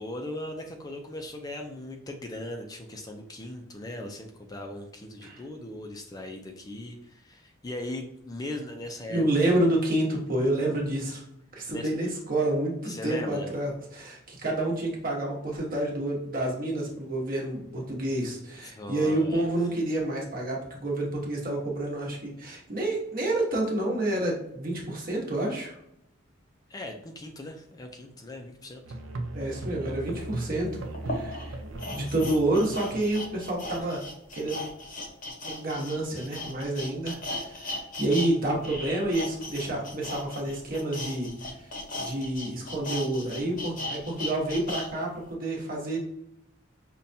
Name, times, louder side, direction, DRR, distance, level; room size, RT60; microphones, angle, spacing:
voice 1, 0.0-9.2 11.7-11.9 12.9-13.5 18.6-19.5 26.7-28.8, left 1 dB, 20° left, 3 dB, 0.3 m, -38 dB
voice 2, 9.1-11.2 11.5-25.8 29.3-31.5 31.8-34.0 34.3-34.6 35.4-37.2 37.4-37.6 38.0-41.3 42.0-46.0, right 1 dB, 45° right, -1 dB, 1.0 m, -29 dB
Musical instrument, 28.8-33.7, right 2 dB, 80° right, 0.5 m, -38 dB
sound 1, 30.2-30.3 30.9-38.3 38.6-44.9 45.3-45.4, left 1 dB, 45° left, 0.7 m, -37 dB
5.5 x 2.2 x 2.6 m, 0.77 s
head